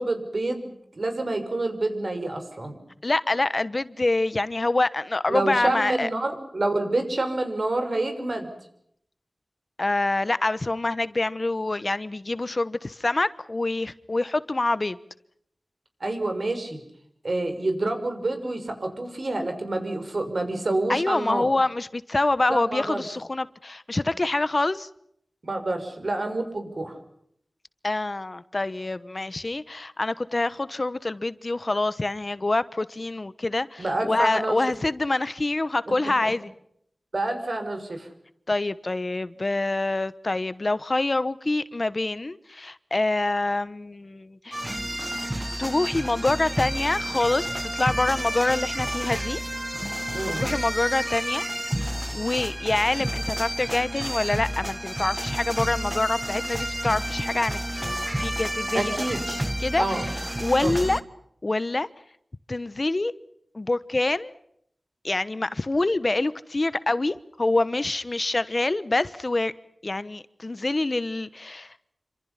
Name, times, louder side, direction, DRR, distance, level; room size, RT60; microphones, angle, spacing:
voice 1, 0.0-2.8 5.3-8.5 16.0-16.8 17.2-21.5 22.5-23.0 25.4-26.9 33.8-34.6 36.2-36.3 37.1-38.1 50.1-50.4 58.7-59.2 59.8-60.1 60.6-60.7, right 2 dB, 60° right, 7 dB, 6.1 m, -28 dB
voice 2, 3.0-6.1 9.8-15.0 20.9-24.9 27.8-36.5 38.5-44.6 45.6-49.4 50.4-51.4 52.1-58.9 59.3-59.8 60.4-61.0 61.4-61.9 62.5-63.1 63.5-64.3 65.0-69.5 69.8-71.7, left 2 dB, 45° left, 15 dB, 1.1 m, -26 dB
sound 1, 44.5-61.0, right 1 dB, 15° right, 1.5 m, -30 dB
27.5 x 26.5 x 5.8 m, 0.72 s
wide cardioid pair, 75°, 0 cm